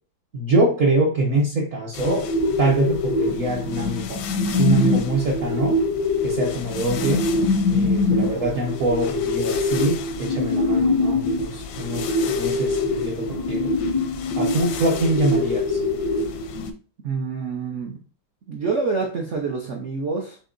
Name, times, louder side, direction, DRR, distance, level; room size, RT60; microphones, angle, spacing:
voice 1, 0.3-2.3 2.6-4.2 4.5-5.8 6.2-7.3 7.7-13.7 14.4-15.8, right 2 dB, 60° right, -2 dB, 0.9 m, -24 dB
sound 1, 1.9-16.7, left 3 dB, 75° left, 1.0 m, -24 dB
voice 2, 17.0-18.0 18.5-20.4, right 4 dB, 85° right, 1 dB, 0.6 m, -27 dB
6.9 x 2.9 x 2.6 m, 0.38 s
omnidirectional pair, 2.3 m